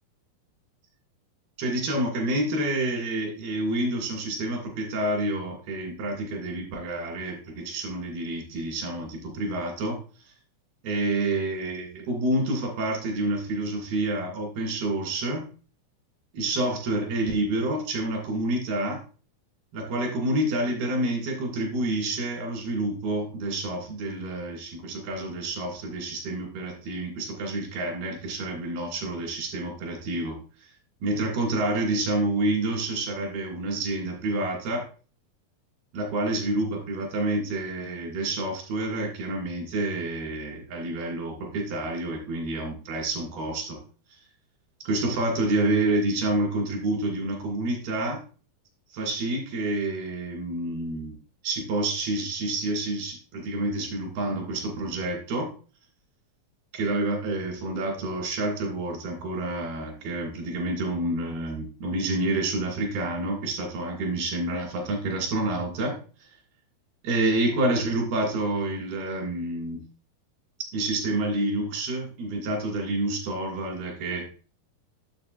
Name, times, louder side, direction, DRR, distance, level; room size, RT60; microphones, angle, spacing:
voice 1, 1.6-10.0 10.8-15.5 16.3-19.0 19.7-30.7 31.0-34.9 35.9-43.8 44.8-48.2 48.9-51.2 51.4-55.5 56.7-66.3 67.0-69.8 70.7-74.3, right 2 dB, 85° right, 0 dB, 4.3 m, -28 dB
8.7 x 7.4 x 2.5 m, 0.37 s
omnidirectional pair, 4.3 m